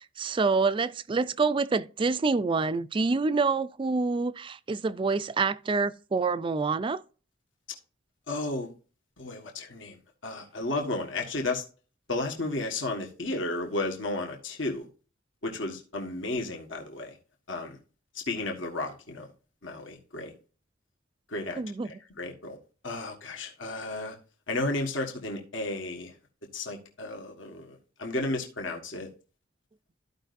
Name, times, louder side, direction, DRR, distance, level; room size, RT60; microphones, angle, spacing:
voice 1, 0.0-7.0 21.6-21.9, right 4 dB, 25° right, 0.3 m, -27 dB
voice 2, 8.3-8.7 9.2-10.0 10.2-11.6 12.1-14.9 15.4-17.2 17.5-17.8 18.3-19.3 19.6-20.3 21.3-22.6 22.8-24.2 24.5-26.1 26.5-29.1, left 2 dB, 70° left, 1.5 m, -33 dB
14.0 x 5.3 x 2.6 m
head